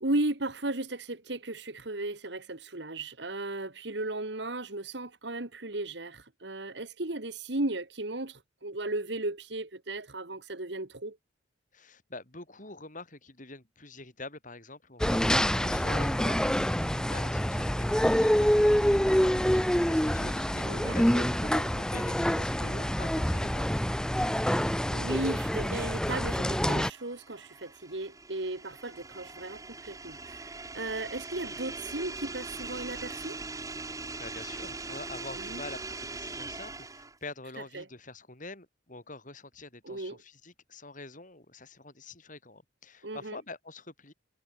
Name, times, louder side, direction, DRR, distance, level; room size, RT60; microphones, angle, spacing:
voice 1, 0.0-11.2 20.6-21.3 22.6-22.7 24.9-33.4 35.4-35.6 37.7-37.9 39.8-40.2 43.0-43.4, right 2 dB, 65° right, 2.0 m, -35 dB
voice 2, 11.7-23.8 34.2-44.1, left 2 dB, 45° left, 6.0 m, -46 dB
sound 1, 15.0-26.9, equal, 5° left, 0.8 m, -26 dB
sound 2, 25.8-37.3, right 3 dB, 20° right, 2.9 m, -41 dB
head